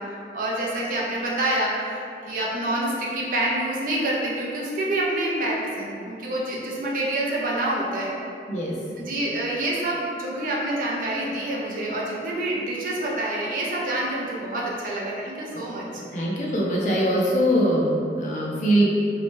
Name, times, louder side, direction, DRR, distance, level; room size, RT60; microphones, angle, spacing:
voice 1, 0.0-8.2 9.0-16.0, right 1 dB, 50° right, -4 dB, 0.4 m, -27 dB
voice 2, 16.1-18.9, equal, 45° left, -5 dB, 0.5 m, -22 dB
2.7 x 2.1 x 3.0 m, 2.4 s
head